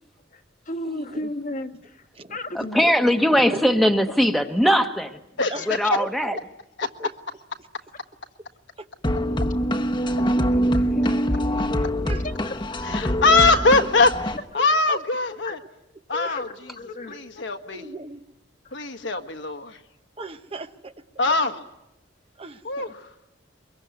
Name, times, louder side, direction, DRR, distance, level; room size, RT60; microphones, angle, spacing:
voice 1, 0.3-2.0 2.3-2.9 5.6-5.9 12.1-12.5 14.6-14.7 15.3-15.6 16.1-17.4, left 2 dB, 45° left, 7 dB, 1.4 m, -34 dB
voice 2, 0.8-1.3 2.2-2.4 2.7-2.9 3.4-3.7 5.5-5.7 6.0-6.4 6.8-7.1 8.8-8.9 11.0-11.2 12.0-12.2 12.9-13.0 14.9-15.0 16.1-16.2 17.7-18.2 20.2-20.9 22.4-22.9, right 2 dB, 30° right, 9 dB, 0.9 m, -36 dB
voice 3, 2.5-5.2 5.7-6.4, equal, ahead, 5 dB, 1.2 m, -20 dB
voice 4, 5.4-5.8 12.8-14.1 14.5-15.6 16.1-16.5 17.4-17.9 18.7-19.8 21.2-21.6 22.6-23.0, left 3 dB, 65° left, 7 dB, 1.5 m, -21 dB
sound 1, 9.0-14.4, equal, 25° left, 1.2 m, -24 dB
23.5 x 22.5 x 9.5 m, 0.89 s
head